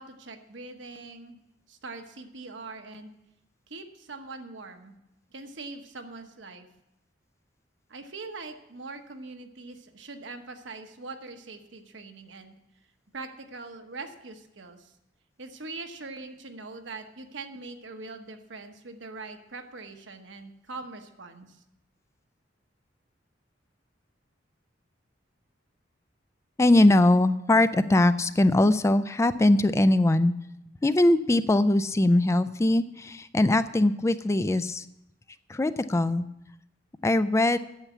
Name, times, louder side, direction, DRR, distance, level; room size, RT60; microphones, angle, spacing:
voice 1, 0.0-1.4 1.7-3.1 3.7-5.0 5.3-6.7 7.9-12.5 13.1-14.9 15.4-21.6, right 3 dB, 75° right, 5 dB, 1.1 m, -42 dB
voice 2, 26.6-30.3 30.8-34.8 35.5-36.3 37.0-37.6, left 1 dB, 15° left, 13 dB, 0.3 m, -21 dB
8.9 x 7.2 x 8.3 m, 0.87 s
head